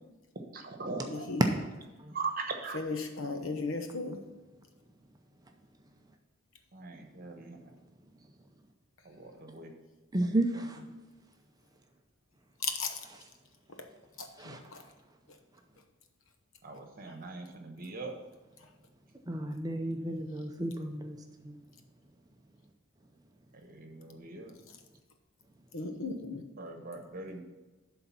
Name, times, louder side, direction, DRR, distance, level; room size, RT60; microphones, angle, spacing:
voice 1, 0.5-1.3 2.1-2.8 6.7-7.7 9.0-9.7 10.2-10.9 16.6-18.1 23.5-24.6 26.6-27.4, right 4 dB, 45° right, 4 dB, 1.1 m, -41 dB
voice 2, 1.1-1.4 2.7-4.2 12.6-13.0 14.2-14.8 25.7-26.4, left 4 dB, 70° left, 6 dB, 1.0 m, -36 dB
voice 3, 10.1-10.8 14.4-14.6 19.3-21.2 21.4-21.6, right 1 dB, 20° right, 4 dB, 0.6 m, -32 dB
11.5 x 3.9 x 5.9 m, 1.1 s
head